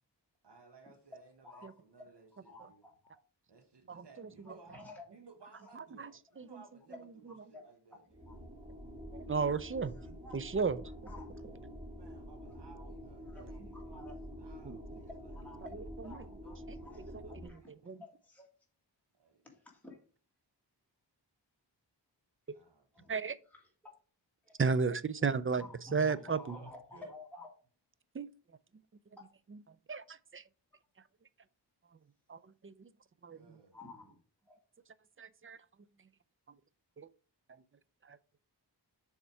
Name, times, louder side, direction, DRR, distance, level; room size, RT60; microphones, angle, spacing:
voice 1, 0.4-1.7 1.9-2.3 2.6-2.8 3.5-7.0 7.5-8.0 12.0-14.0 14.4-15.3 16.4-16.6 17.1-17.7 19.2-19.4 22.5-23.1 25.1-25.3 26.5-27.1 33.3-33.8, right 4 dB, 70° right, 1.2 m, -59 dB
voice 2, 1.1-1.8 2.3-3.1 3.9-5.1 5.5-5.7 6.3-6.4 6.9-8.4 9.8-10.4 11.0-11.3 12.4-12.6 13.2-14.4 15.1-18.5 19.4-20.0 22.9-23.1 23.5-24.0 24.4-24.6 25.5-27.6 29.2-29.3 33.7-34.2 34.5-34.6, left 2 dB, 5° left, 1.8 m, -53 dB
voice 3, 3.9-4.6 5.7-6.6 9.1-9.9 10.3-10.8 14.6-14.8 16.7-16.8 17.1-17.6 17.9-18.0 23.1-23.4 24.6-25.6 25.9-26.4 28.1-28.3 29.9-30.4 32.3-32.9 33.2-33.6 35.2-35.6 37.0-37.1 38.0-38.2, right 5 dB, 30° right, 0.4 m, -34 dB
sound 1, 8.1-17.5, equal, 15° right, 1.8 m, -47 dB
6.8 x 3.7 x 4.5 m
wide cardioid pair, 55°, 43 cm